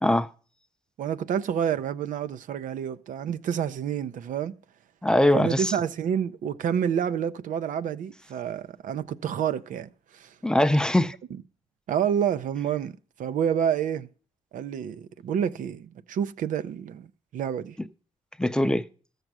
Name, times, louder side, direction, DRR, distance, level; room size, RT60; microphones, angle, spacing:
voice 1, 1.0-4.5 5.3-10.3 11.9-14.1 14.5-17.1 17.3-17.8, right 8 dB, 85° right, 0.6 m, -28 dB
voice 2, 5.0-5.7 10.4-11.1 18.4-18.8, left 1 dB, 5° left, 0.5 m, -21 dB
14.0 x 6.6 x 6.0 m
wide cardioid pair, 130°, 13 cm